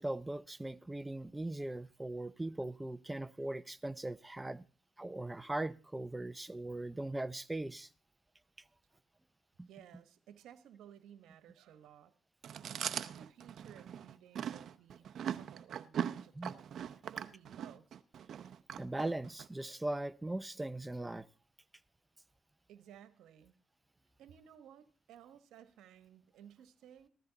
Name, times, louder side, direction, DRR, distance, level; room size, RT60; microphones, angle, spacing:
voice 1, 0.0-4.7 5.0-7.9 9.6-9.7 16.4-16.5 18.8-21.3, right 2 dB, 10° right, 0.6 m, -39 dB
voice 2, 9.7-12.1 12.7-16.7 17.0-18.0 22.7-23.6 24.2-27.1, right 10 dB, 85° right, 1.2 m, -57 dB
Chewing mastication, 12.4-19.5, right 9 dB, 65° right, 0.7 m, -41 dB
15.5 x 13.0 x 4.0 m
cardioid pair, 90°, 0 cm